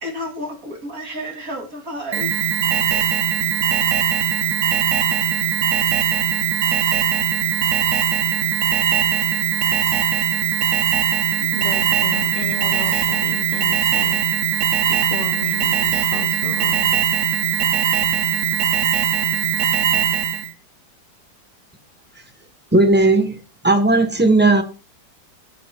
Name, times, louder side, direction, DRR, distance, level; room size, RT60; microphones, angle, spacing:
voice 1, 0.0-2.5, equal, 45° right, 3.2 m, -31 dB
Alarm, 2.1-20.5, right 9 dB, 60° right, 0.8 m, -20 dB
voice 2, 11.3-14.3 14.9-17.0, left 5 dB, 45° left, 1.5 m, -33 dB
voice 3, 22.7-24.6, right 2 dB, 10° right, 0.7 m, -16 dB
20.0 x 7.5 x 2.3 m
omnidirectional pair, 2.1 m